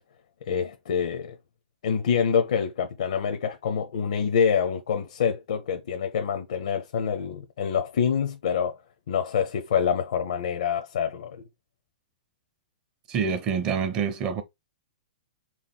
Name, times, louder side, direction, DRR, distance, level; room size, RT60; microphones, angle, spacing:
voice 1, 0.5-1.4 1.8-8.8 9.1-11.4, left 7 dB, 65° left, 0.7 m, -26 dB
voice 2, 13.1-14.4, right 6 dB, 25° right, 0.6 m, -26 dB
3.6 x 3.1 x 4.1 m
hypercardioid pair, 160°, 4 cm